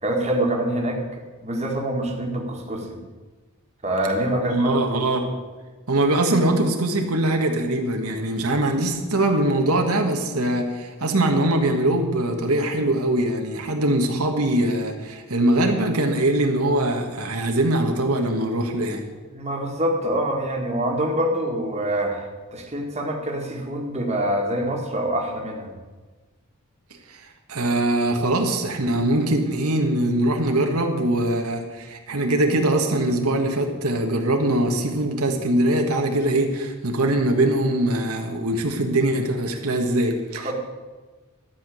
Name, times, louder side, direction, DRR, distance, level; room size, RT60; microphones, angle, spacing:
voice 1, 0.0-1.0 1.4-3.0 3.8-5.0 19.3-25.7 40.4-40.5, right 1 dB, 30° right, 1 dB, 1.8 m, -25 dB
voice 2, 4.5-5.3 5.9-19.0 27.1-27.2 27.5-40.5, right 1 dB, 85° right, 3 dB, 1.6 m, -22 dB
12.5 x 6.0 x 9.1 m, 1.3 s
head